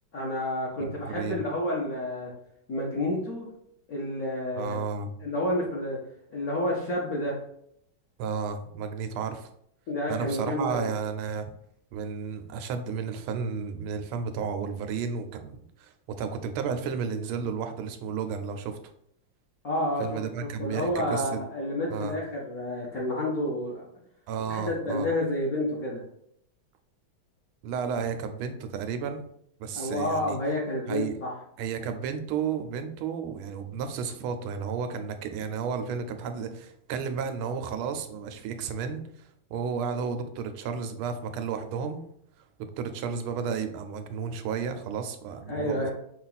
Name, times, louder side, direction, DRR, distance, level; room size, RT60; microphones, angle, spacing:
voice 1, 0.1-2.3 2.7-3.5 3.9-4.8 5.2-6.0 6.3-7.3 9.9-10.9 19.6-20.2 20.6-23.8 24.5-26.0 29.7-31.3 45.5-45.9, left 1 dB, 55° left, -5 dB, 1.1 m, -29 dB
voice 2, 0.8-1.4 4.5-5.1 8.2-9.5 10.1-11.5 11.9-18.8 20.0-21.4 21.9-22.1 24.3-25.1 27.6-29.2 29.6-30.4 30.9-31.1 31.6-42.0 42.6-45.9, right 6 dB, 90° right, 7 dB, 1.5 m, -32 dB
5.6 x 2.4 x 4.0 m, 0.71 s
omnidirectional pair, 2.3 m